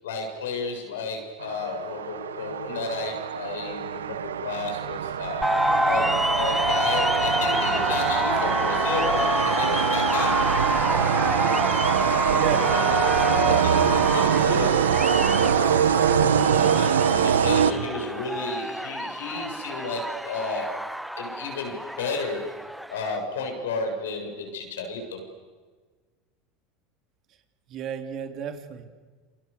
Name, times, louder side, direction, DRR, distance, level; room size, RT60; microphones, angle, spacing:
voice 1, 0.0-5.5 5.8-10.6 12.7-15.6 16.1-20.9 21.2-22.6 22.9-25.2, left 3 dB, 80° left, 4 dB, 7.4 m, -32 dB
sound 1, 1.4-18.2, right 8 dB, 85° right, 1.2 m, -24 dB
sound 2, 5.4-23.2, equal, ahead, 0.9 m, -27 dB
voice 2, 12.3-12.7 27.7-28.8, right 8 dB, 50° right, 5 dB, 3.2 m, -32 dB
29.0 x 28.0 x 7.0 m, 1.4 s
hypercardioid pair, 85°, 0 cm